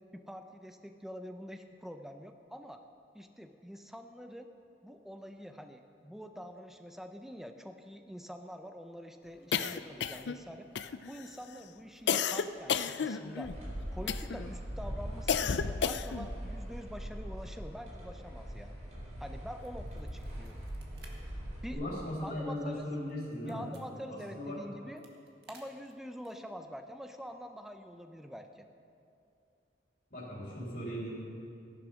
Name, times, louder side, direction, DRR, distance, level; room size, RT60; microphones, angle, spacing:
voice 1, 0.1-2.8 3.1-4.5 4.8-10.7 11.1-13.5 13.9-18.7 19.2-20.6 21.6-22.8 23.5-25.0 25.5-28.7, equal, ahead, 6 dB, 0.5 m, -46 dB
sound 1, 9.5-10.4 10.7-11.3 12.1-13.5 14.1-14.5 15.3-16.3, left 7 dB, 80° left, 0.5 m, -32 dB
sound 2, 13.4-21.7, equal, 40° right, 4.0 m, -42 dB
sound 3, 19.6-21.1 21.5-21.6 22.0-23.8 24.6-26.5, right 4 dB, 65° right, 1.8 m, -59 dB
voice 2, 21.7-23.7 24.1-24.5 30.1-31.1, equal, 50° left, -9 dB, 3.6 m, -38 dB
14.5 x 11.0 x 6.2 m, 2.6 s
head